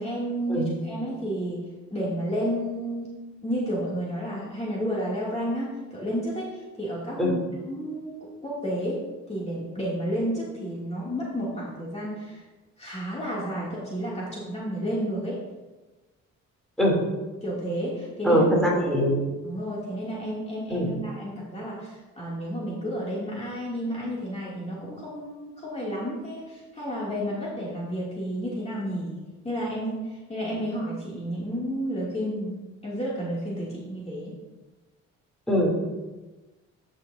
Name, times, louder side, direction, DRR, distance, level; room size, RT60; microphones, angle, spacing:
voice 1, 0.0-1.6 1.9-3.1 3.4-6.5 6.8-8.1 8.4-9.0 9.3-12.4 12.8-15.4 17.4-18.5 19.4-29.2 29.4-30.0 30.3-32.6 32.8-34.3, equal, 20° left, -6 dB, 2.6 m, -31 dB
voice 2, 18.2-19.1 20.7-20.9 35.5-35.7, equal, ahead, -4 dB, 3.0 m, -22 dB
13.5 x 6.2 x 2.7 m, 1.2 s
cardioid pair, 90°, 30 cm